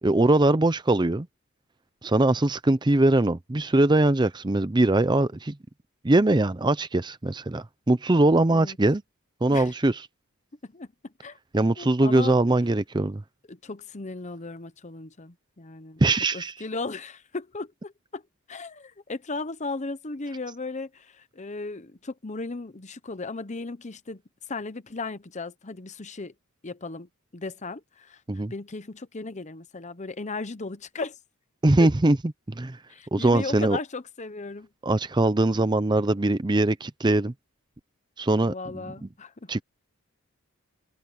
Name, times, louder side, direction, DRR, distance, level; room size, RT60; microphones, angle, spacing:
voice 1, 0.0-1.3 2.0-5.6 6.0-9.0 9.4-10.0 11.5-13.2 16.0-16.5 28.3-28.5 31.6-32.2 32.5-32.8 33.1-33.8 34.8-37.3 38.2-38.8 39.5-39.6, right 2 dB, 20° right, 0.5 m, -22 dB
voice 2, 10.6-11.4 11.8-12.4 13.5-16.0 16.3-18.2 18.5-24.2 24.5-26.3 26.6-31.2 31.8-31.9 32.9-34.7 38.4-39.5, left 3 dB, 30° left, 0.8 m, -36 dB
open air
head